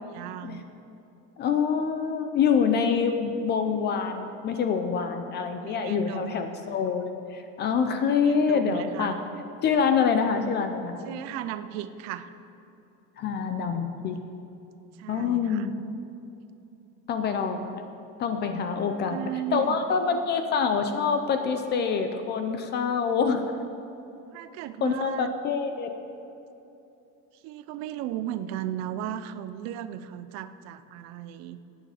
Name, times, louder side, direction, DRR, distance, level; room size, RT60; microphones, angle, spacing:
voice 1, 0.1-0.6 5.6-6.6 8.2-9.2 11.0-12.3 15.0-15.7 18.8-19.9 24.3-25.3 27.4-31.6, right 11 dB, 50° right, 12 dB, 0.6 m, -36 dB
voice 2, 1.4-9.1 9.6-11.1 13.2-14.2 15.1-15.7 17.1-17.8 18.2-19.2 19.5-23.5 24.8-25.9, left 6 dB, 30° left, 7 dB, 0.5 m, -26 dB
16.0 x 9.2 x 5.0 m, 2.9 s
cardioid pair, 175°, 35 cm